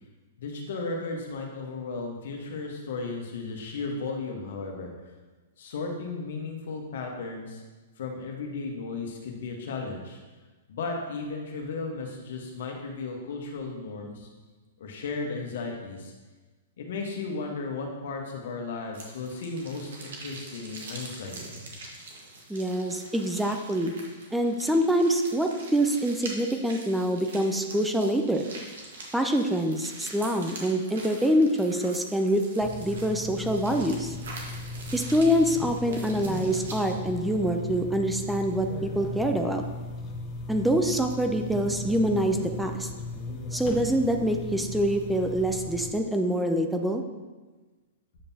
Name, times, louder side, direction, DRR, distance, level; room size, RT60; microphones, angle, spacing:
voice 1, 0.4-4.9 5.6-7.6 8.0-10.2 10.7-14.3 14.8-16.1 16.8-21.4, left 3 dB, 70° left, 1 dB, 1.3 m, -35 dB
sound 1, 18.9-36.9, right 2 dB, 75° right, 1.5 m, -44 dB
voice 2, 22.5-23.9 24.3-28.4 29.1-34.2 34.9-39.6 40.5-42.9 43.5-47.0, equal, 5° right, 4 dB, 0.5 m, -25 dB
sound 2, 32.6-45.9, left 2 dB, 30° left, 0.9 m, -37 dB
8.6 x 5.3 x 2.9 m, 1.3 s
hypercardioid pair, 120°, 0 cm